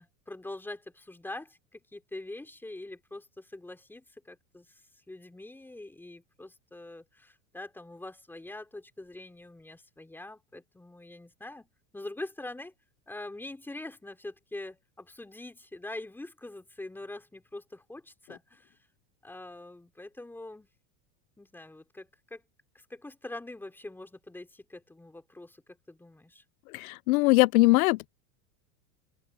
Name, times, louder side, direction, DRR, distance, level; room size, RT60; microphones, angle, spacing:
voice 1, 0.0-11.7 11.9-12.7 13.1-18.8 19.2-20.7 21.4-22.4 22.9-25.6 25.9-26.4, left 2 dB, 5° left, 3.5 m, -44 dB
voice 2, 26.7-28.1, left 22 dB, 80° left, 0.5 m, -21 dB
open air
supercardioid pair, 150°, 42 cm